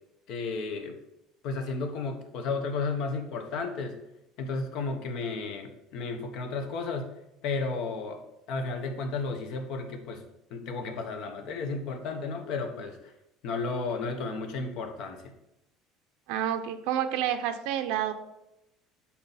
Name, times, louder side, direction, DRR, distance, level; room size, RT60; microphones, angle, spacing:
voice 1, 0.3-1.0 1.4-4.0 4.4-7.1 7.4-8.2 8.5-10.2 10.5-13.1 13.4-15.3, left 4 dB, 60° left, 5 dB, 1.0 m, -33 dB
voice 2, 16.3-18.1, right 10 dB, 85° right, 7 dB, 0.6 m, -29 dB
8.5 x 4.3 x 4.1 m, 0.88 s
cardioid pair, 165°, 0 cm